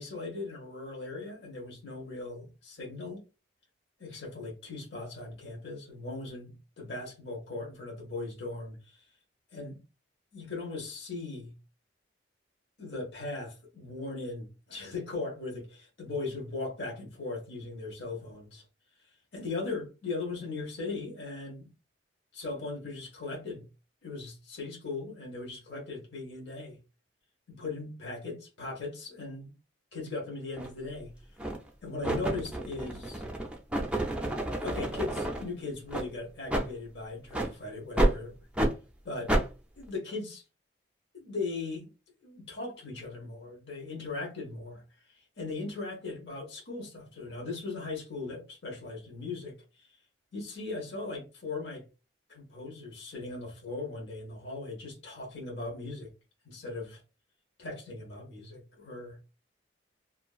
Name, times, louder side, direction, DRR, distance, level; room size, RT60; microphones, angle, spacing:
voice 1, 0.0-3.2 4.0-9.0 9.5-9.8 10.3-11.5 12.8-18.6 19.3-21.7 22.3-23.6 24.0-26.8 27.5-29.5 29.9-31.1 31.8-33.2 34.6-38.4 39.0-39.3 39.8-40.4 41.1-41.9 42.2-44.8 45.1-49.9 50.3-51.8 52.3-56.1 56.4-57.0 57.6-59.2, left 3 dB, 65° left, 1.0 m, -38 dB
sound 1, 30.6-30.7 31.4-31.7 32.0-35.4 35.9-36.1 36.5-36.7 37.3-37.5 38.0-38.2 38.6-38.7 39.3-39.5, right 1 dB, 5° right, 0.4 m, -29 dB
2.8 x 2.5 x 2.3 m
head